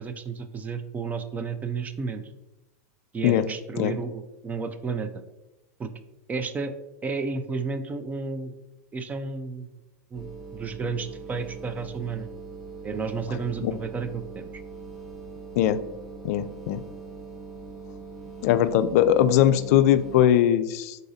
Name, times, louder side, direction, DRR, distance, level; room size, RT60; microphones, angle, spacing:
voice 1, 0.0-2.2 3.1-5.1 5.8-5.9 6.3-6.8 7.0-8.5 8.9-9.7 10.1-12.3 12.8-14.4, right 4 dB, 20° right, 9 dB, 0.3 m, -32 dB
sound 1, 10.1-20.2, right 4 dB, ahead, 1.0 m, -41 dB
voice 2, 16.2-16.8 18.4-21.0, left 11 dB, 65° left, 12 dB, 0.4 m, -20 dB
4.7 x 3.9 x 2.7 m, 0.97 s
supercardioid pair, 125°, 9 cm